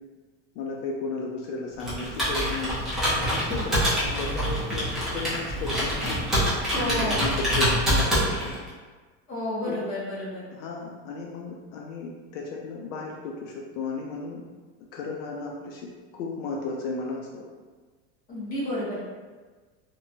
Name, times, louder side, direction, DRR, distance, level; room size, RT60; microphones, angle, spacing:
voice 1, 0.6-2.7 3.2-6.2 6.7-8.6 9.7-9.9 10.5-14.4 14.9-15.9 16.1-17.4, left 3 dB, 75° left, -1 dB, 0.5 m, -34 dB
Computer keyboard, 1.8-8.7, equal, ahead, 0.6 m, -26 dB
voice 2, 6.7-7.3 9.3-10.4 18.3-19.0, left 1 dB, 25° left, -9 dB, 1.0 m, -30 dB
2.8 x 2.2 x 2.7 m, 1.4 s
supercardioid pair, 160°, 37 cm